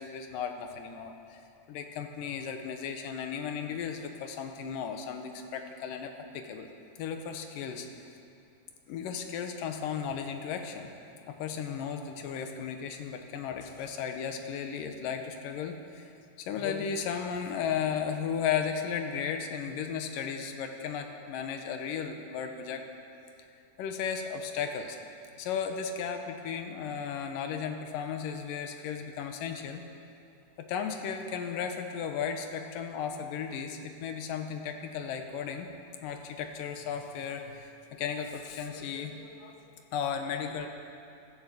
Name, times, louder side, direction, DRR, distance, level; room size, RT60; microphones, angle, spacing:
voice 1, 0.0-1.4 1.7-6.7 7.0-8.1 8.9-10.9 11.2-16.1 16.4-22.8 23.8-25.0 25.4-29.8 30.6-35.7 36.0-40.7, left 7 dB, 85° left, 5 dB, 2.8 m, -35 dB
15.0 x 13.0 x 6.8 m, 2.7 s
omnidirectional pair, 3.8 m